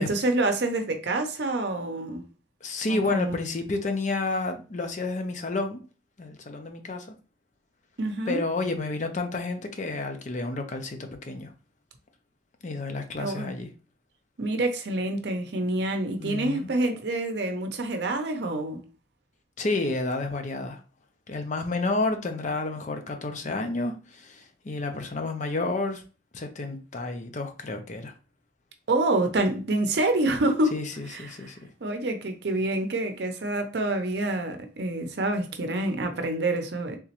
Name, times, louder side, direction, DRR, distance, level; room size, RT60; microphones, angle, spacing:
voice 1, 0.0-2.2 2.9-3.4 8.0-8.4 13.2-13.5 14.4-18.8 28.9-30.8 31.1-31.3 31.8-37.0, right 2 dB, 65° right, 0.6 m, -27 dB
voice 2, 2.6-5.8 6.2-7.1 8.3-11.5 12.6-13.7 16.1-16.7 19.6-20.8 21.3-26.0 26.3-28.1 30.7-31.7, left 2 dB, 40° left, 0.5 m, -30 dB
3.5 x 3.0 x 2.9 m
head